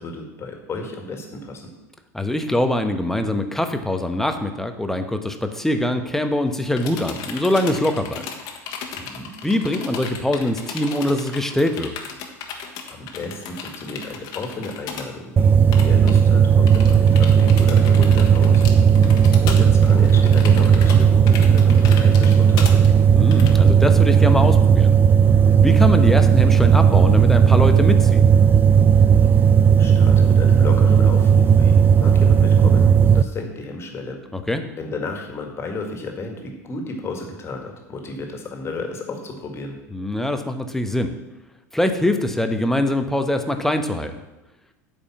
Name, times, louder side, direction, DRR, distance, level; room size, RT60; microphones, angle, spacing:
voice 1, 0.0-1.6 9.0-9.3 12.9-18.7 19.4-22.8 29.8-32.9 33.1-34.2 34.8-39.8, left 2 dB, 30° left, 3 dB, 2.1 m, -32 dB
voice 2, 2.1-8.2 9.4-11.9 18.7-19.2 23.2-24.9 25.6-28.2 34.3-34.6 39.9-41.1 41.7-44.2, left 1 dB, 5° left, 7 dB, 1.0 m, -23 dB
sound 1, 6.5-15.1 15.4-15.5 15.7-16.2 16.7-23.5, left 6 dB, 45° left, 1.4 m, -35 dB
sound 2, 15.4-33.2, right 7 dB, 20° right, 0.4 m, -14 dB
8.6 x 5.3 x 7.3 m, 1.0 s
figure-of-eight pair, 80°, 9 cm